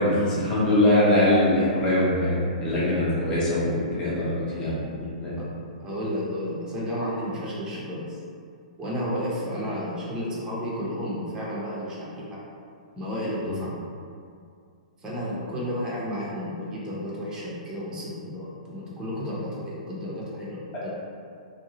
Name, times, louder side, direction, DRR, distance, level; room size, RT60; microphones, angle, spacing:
voice 1, 0.0-5.3 13.4-13.5, left 1 dB, 20° left, -8 dB, 0.9 m, -23 dB
voice 2, 4.2-4.7 5.4-5.5 5.8-8.2 8.8-12.4 13.0-13.7 15.0-20.9, equal, 15° right, -7 dB, 0.7 m, -32 dB
2.7 x 2.2 x 2.9 m, 2.3 s
figure-of-eight pair, 115°, 4 cm